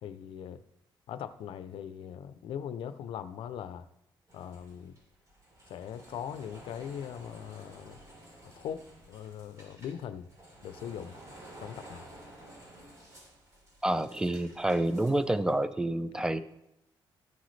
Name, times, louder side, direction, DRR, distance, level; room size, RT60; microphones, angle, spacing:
voice 1, 0.0-0.6 1.1-3.9 4.3-5.0 5.7-8.0 8.4-10.3 10.6-11.2 11.6-12.1, left 9 dB, 85° left, 13 dB, 0.5 m, -40 dB
sound 1, 4.3-15.7, right 1 dB, 40° right, 3.7 m, -53 dB
voice 2, 13.8-16.4, right 1 dB, 10° right, 13 dB, 0.5 m, -28 dB
14.0 x 7.9 x 3.2 m, 0.85 s
cardioid pair, 125°, 9 cm